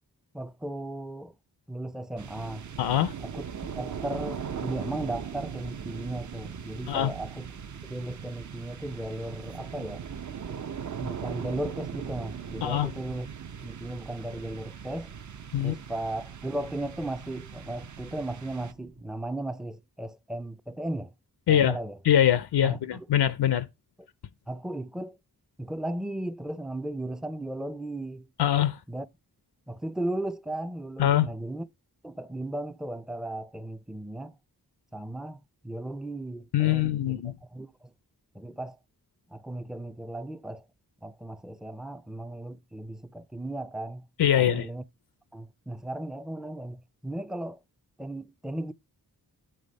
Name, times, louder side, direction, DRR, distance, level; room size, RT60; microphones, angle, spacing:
voice 1, 0.3-1.3 1.7-2.7 3.2-3.4 3.8-7.5 7.9-10.1 11.0-13.3 13.6-15.1 15.6-21.1 21.5-22.0 22.6-23.1 24.5-25.2 25.6-28.3 28.9-29.1 29.7-31.7 32.0-34.4 34.9-37.9 38.3-38.8 39.3-40.7 41.0-44.1 44.4-44.8 45.3-47.6 48.0-48.7, right 1 dB, ahead, 0.3 m, -36 dB
sound 1, 2.2-19.1, right 7 dB, 50° right, 0.6 m, -39 dB
voice 2, 2.8-3.1 6.9-7.1 12.6-12.9 15.5-15.8 21.5-21.8 22.0-23.7 28.4-28.8 31.0-31.3 36.5-37.3 44.2-44.7, left 10 dB, 90° left, 0.5 m, -23 dB
8.9 x 3.4 x 5.2 m
wide cardioid pair, 95°, 38 cm